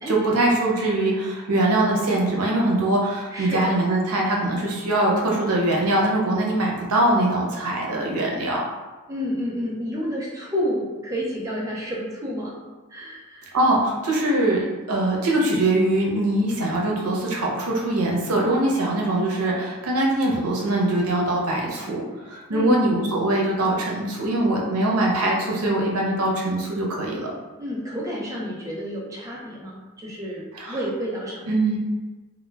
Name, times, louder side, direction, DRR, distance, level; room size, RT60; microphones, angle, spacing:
voice 1, 0.1-8.6 13.5-27.3 30.5-30.8 31.5-31.8, right 1 dB, 80° right, -2 dB, 0.6 m, -22 dB
voice 2, 3.3-3.7 9.1-12.5 12.9-13.6 22.5-22.7 27.6-31.5, equal, 15° right, -4 dB, 0.4 m, -30 dB
2.1 x 2.1 x 3.2 m, 1.2 s
head